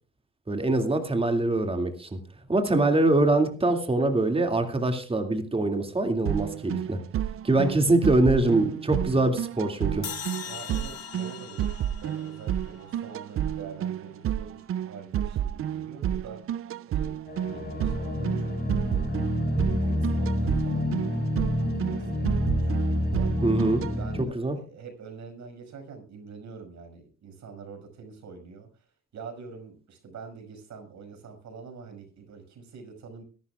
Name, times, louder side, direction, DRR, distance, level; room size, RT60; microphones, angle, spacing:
voice 1, 0.5-2.2 2.5-7.0 7.4-10.1 23.4-23.8 24.3-24.6, right 2 dB, 20° right, 6 dB, 2.3 m, -24 dB
sound 1, 6.2-23.9, right 10 dB, 45° right, 0.5 m, -31 dB
sound 2, 10.0-13.3, left 9 dB, 55° left, 2.3 m, -40 dB
voice 2, 10.4-16.4 16.9-17.2 17.5-18.5 18.9-23.3 23.8-28.8 29.1-33.2, right 5 dB, 65° right, 5 dB, 5.9 m, -45 dB
sound 3, 17.3-24.2, left 1 dB, 30° left, 7.0 m, -28 dB
23.0 x 11.5 x 2.4 m, 0.37 s
cardioid pair, 90°, 30 cm